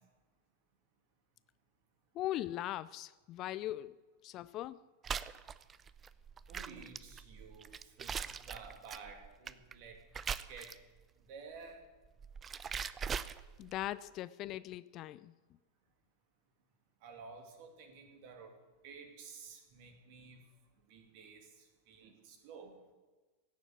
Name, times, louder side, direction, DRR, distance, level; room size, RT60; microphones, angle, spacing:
voice 1, 2.2-4.0 4.2-4.8 13.6-15.3, left 14 dB, 35° left, 0.4 m, -40 dB
sound 1, 5.0-11.0 12.0-13.8, right 6 dB, 20° right, 0.5 m, -41 dB
voice 2, 6.5-10.0 10.5-10.8 11.3-11.8 17.0-18.6 18.8-20.4 20.9-22.8, right 5 dB, 45° right, 2.5 m, -52 dB
16.5 x 7.2 x 8.1 m
figure-of-eight pair, 90°, 0 cm